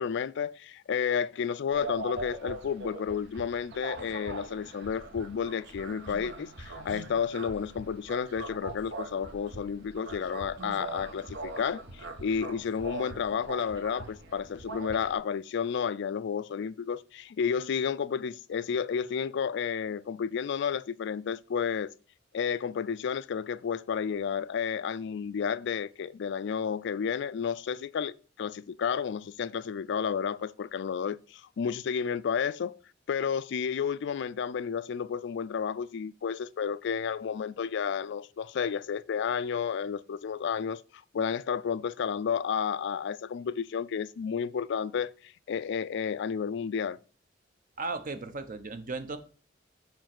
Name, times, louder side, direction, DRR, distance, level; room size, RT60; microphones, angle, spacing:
voice 1, 0.0-21.9 22.3-32.8 33.1-40.8 41.1-47.0, left 7 dB, 65° left, 0.4 m, -31 dB
sound 1, 1.7-15.2, right 2 dB, 65° right, 1.0 m, -42 dB
voice 2, 47.8-49.2, right 3 dB, 45° right, 0.8 m, -36 dB
5.3 x 4.6 x 5.9 m
head